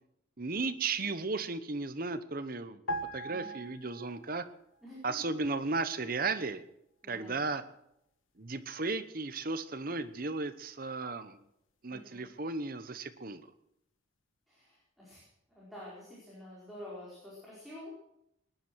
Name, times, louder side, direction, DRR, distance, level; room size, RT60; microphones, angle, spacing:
voice 1, 0.4-2.8 3.1-4.5 5.0-6.6 7.1-7.6 8.4-11.4 11.8-13.5, right 3 dB, 45° right, 11 dB, 1.0 m, -35 dB
sound 1, 2.9-4.5 4.8-5.0, right 1 dB, 80° left, 1.4 m, -39 dB
voice 2, 3.2-3.6 4.8-5.2 6.1-6.2 7.0-7.4 11.9-12.3 14.5-15.2 15.5-17.9, left 1 dB, ahead, -7 dB, 4.8 m, -48 dB
20.0 x 10.5 x 6.3 m, 0.80 s
head